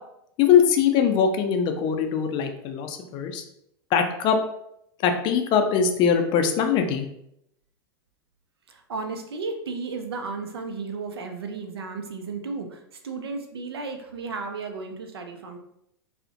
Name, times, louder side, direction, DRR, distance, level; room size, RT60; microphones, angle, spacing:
voice 1, 0.4-3.4 3.9-4.4 5.0-7.1, left 7 dB, 40° left, 5 dB, 0.3 m, -21 dB
voice 2, 8.7-15.6, right 4 dB, 80° right, 6 dB, 0.4 m, -34 dB
2.4 x 2.0 x 2.4 m, 0.77 s
hypercardioid pair, 95°, 13 cm